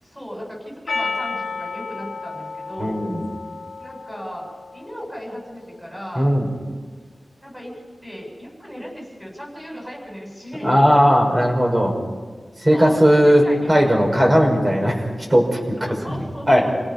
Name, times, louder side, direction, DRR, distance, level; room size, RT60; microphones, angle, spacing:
voice 1, 0.0-3.0 3.8-4.5 4.7-6.3 7.4-7.7 8.0-10.8 12.7-14.4 15.8-16.7, equal, 5° right, -2 dB, 7.4 m, -36 dB
Percussion, 0.9-5.2, left 4 dB, 80° left, 1.8 m, -32 dB
voice 2, 2.8-3.2 6.2-6.5 10.6-12.0 12.6-15.8 16.1-16.6, equal, 25° right, 0 dB, 5.6 m, -17 dB
29.0 x 18.0 x 5.6 m, 1.5 s
wide cardioid pair, 95°, 0 cm